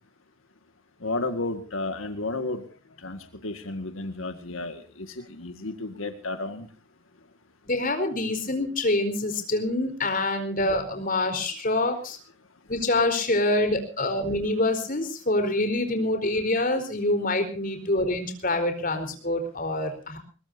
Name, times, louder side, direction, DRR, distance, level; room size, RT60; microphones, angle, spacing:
voice 1, 1.0-2.6 3.0-6.7, left 2 dB, 90° left, 7 dB, 2.0 m, -32 dB
voice 2, 7.6-12.2 12.7-20.2, left 2 dB, 45° left, 7 dB, 4.3 m, -26 dB
21.5 x 21.5 x 2.8 m, 0.37 s
head